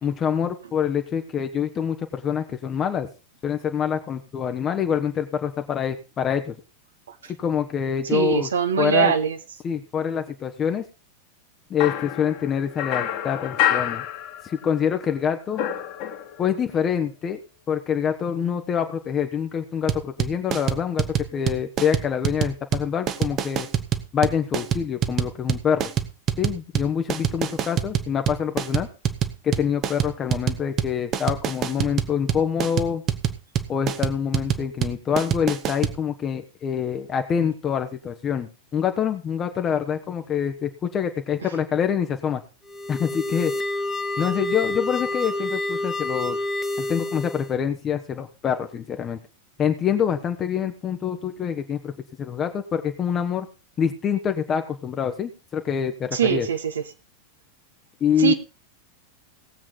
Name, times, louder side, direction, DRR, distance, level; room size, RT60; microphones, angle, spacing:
voice 1, 0.0-3.1 3.4-6.6 7.4-8.5 8.8-9.1 9.6-10.8 11.7-14.0 14.4-15.6 16.4-17.4 17.7-21.0 21.3-23.7 24.1-25.9 26.4-28.9 29.4-33.0 33.7-42.4 42.9-43.5 44.2-46.4 46.8-49.2 49.6-51.9 52.2-53.5 53.8-56.5 58.0-58.3, left 8 dB, 25° left, 7 dB, 1.0 m, -25 dB
voice 2, 8.1-9.4 56.1-56.8 58.2-58.3, right 7 dB, 65° right, 9 dB, 1.1 m, -22 dB
sound 1, 11.8-14.8 15.1-16.6, left 10 dB, 45° left, 1.8 m, -28 dB
sound 2, 19.9-36.0, right 10 dB, 30° right, 1.0 m, -25 dB
sound 3, 42.7-47.5, left 2 dB, 10° left, 1.2 m, -28 dB
18.5 x 7.5 x 3.9 m, 0.31 s
figure-of-eight pair, 90°, 0 cm